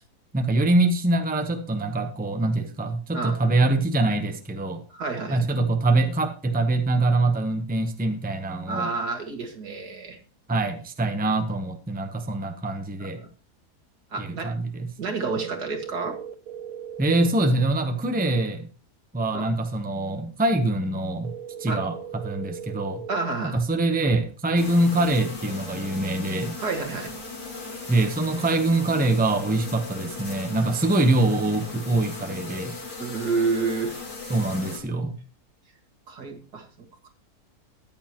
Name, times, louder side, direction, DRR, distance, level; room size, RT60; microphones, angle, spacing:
voice 1, 0.3-4.8 5.3-8.9 10.5-13.2 14.2-14.9 17.0-18.7 19.1-21.3 21.6-23.0 23.4-26.6 27.9-32.7 34.3-35.2, right 2 dB, 5° right, 6 dB, 0.8 m, -24 dB
voice 2, 4.9-5.4 8.7-10.2 13.2-13.3 14.1-14.5 15.0-16.2 19.3-19.5 21.7-21.8 23.1-23.6 26.6-27.1 33.0-33.9 36.1-36.7, right 4 dB, 85° right, 3 dB, 2.5 m, -29 dB
sound 1, 15.3-17.3 21.2-23.3, right 8 dB, 65° right, 1.4 m, -38 dB
sound 2, 24.6-34.8, left 3 dB, 85° left, 3.4 m, -38 dB
14.0 x 9.7 x 3.0 m, 0.36 s
omnidirectional pair, 1.7 m